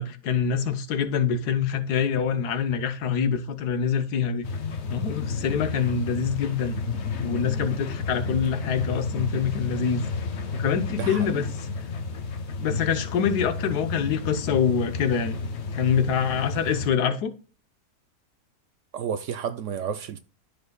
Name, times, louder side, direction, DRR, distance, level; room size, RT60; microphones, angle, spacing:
voice 1, 0.0-4.5 4.9-6.7 7.2-10.0 10.5-11.5 12.6-15.4 15.7-17.3, left 7 dB, 90° left, 1.5 m, -25 dB
sound 1, 4.4-16.9, left 4 dB, 50° left, 1.1 m, -32 dB
voice 2, 10.9-11.5 18.9-20.2, right 7 dB, 70° right, 0.8 m, -31 dB
13.0 x 5.3 x 2.3 m
omnidirectional pair, 1.7 m